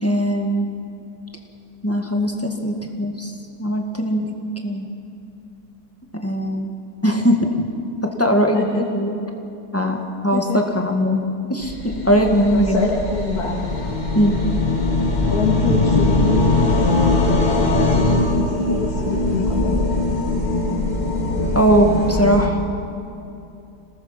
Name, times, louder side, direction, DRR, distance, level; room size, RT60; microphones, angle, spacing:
voice 1, 0.0-0.7 1.8-3.3 3.6-4.3 4.6-4.9 6.1-6.7 7.0-7.6 8.0-9.2 9.7-10.0 10.2-11.2 11.5-12.8 14.1-14.4 21.5-22.6, equal, 10° left, 2 dB, 1.8 m, -20 dB
voice 2, 8.5-8.8 10.3-10.6 12.5-13.7 15.2-16.4 16.7-19.7, left 4 dB, 60° left, -1 dB, 2.4 m, -25 dB
sound 1, 11.6-22.5, left 2 dB, 25° left, 1.8 m, -20 dB
26.0 x 19.5 x 5.9 m, 2.7 s
omnidirectional pair, 1.9 m